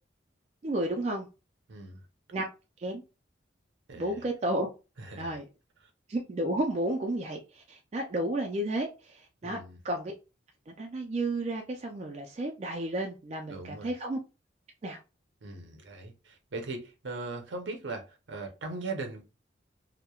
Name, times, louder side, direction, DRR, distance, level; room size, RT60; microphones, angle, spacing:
voice 1, 0.6-1.3 2.3-2.4 2.8-3.0 3.9-4.7 5.2-5.4 6.1-9.6 9.8-10.1 10.7-14.2 14.8-15.0, right 1 dB, 35° right, 0.3 m, -32 dB
voice 2, 1.7-2.1 3.9-4.3 5.0-5.4 5.8-5.9 9.4-9.8 13.5-13.9 15.4-19.2, right 3 dB, 75° right, 0.6 m, -39 dB
2.9 x 2.1 x 2.3 m
head